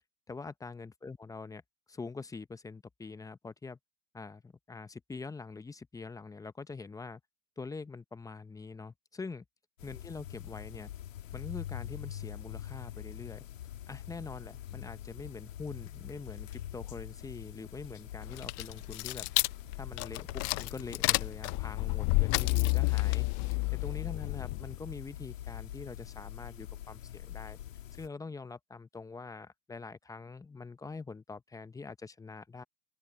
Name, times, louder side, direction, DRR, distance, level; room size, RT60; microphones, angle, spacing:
voice 1, 0.3-1.6 1.9-3.8 4.1-7.2 7.6-9.4 9.8-10.9 11.3-13.4 13.9-19.3 19.8-27.6 28.0-32.6, left 4 dB, 10° left, 0.8 m, -44 dB
sound 1, 9.8-28.1, left 12 dB, 80° left, 1.7 m, -45 dB
sound 2, 18.2-24.8, left 29 dB, 40° left, 0.5 m, -30 dB
open air
hypercardioid pair, 110°, 38 cm